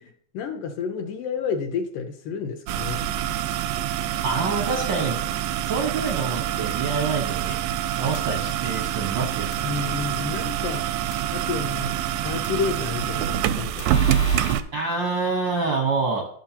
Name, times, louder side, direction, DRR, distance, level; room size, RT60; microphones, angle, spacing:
voice 1, 0.0-3.0 9.6-10.8 11.3-14.1, left 6 dB, 80° left, 3 dB, 2.4 m, -30 dB
sound 1, 2.7-14.6, right 10 dB, 85° right, 2.2 m, -26 dB
voice 2, 4.2-5.2 5.6-7.6 8.0-10.0 14.7-16.3, right 4 dB, 70° right, 1 dB, 1.0 m, -27 dB
sound 2, 6.7-6.8 8.2-8.3 9.5-9.6 11.1-11.2 12.4-12.5 13.8-14.5, left 5 dB, 60° left, 2.0 m, -37 dB
13.5 x 6.1 x 2.9 m, 0.64 s
omnidirectional pair, 3.8 m